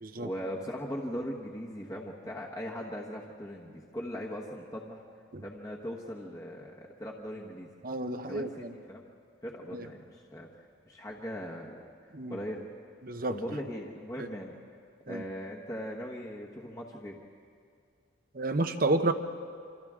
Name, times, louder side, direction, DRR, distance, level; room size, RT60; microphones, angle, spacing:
voice 1, 0.1-5.0 5.4-7.7 8.2-9.0 9.4-10.5 10.8-11.9 12.3-12.6 13.3-14.5 15.1-17.2, equal, 20° left, -2 dB, 1.2 m, -39 dB
voice 2, 7.8-8.7 9.7-9.9 12.1-12.4 13.0-13.3 14.2-14.3 15.1-15.2 18.3-19.1, right 2 dB, 50° right, 8 dB, 0.9 m, -30 dB
28.5 x 26.0 x 3.7 m, 2.3 s
head